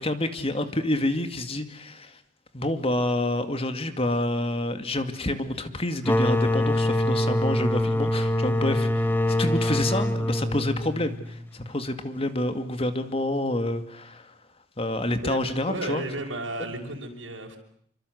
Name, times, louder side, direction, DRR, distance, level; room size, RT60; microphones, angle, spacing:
voice 1, 0.0-2.2 2.5-14.3 14.8-16.0 16.6-16.7, left 1 dB, 30° left, 9 dB, 2.3 m, -28 dB
sound 1, 6.0-11.5, left 1 dB, 10° left, 1.8 m, -24 dB
voice 2, 15.2-17.6, right 2 dB, 85° right, 1 dB, 6.2 m, -33 dB
29.0 x 25.0 x 8.1 m, 0.63 s
head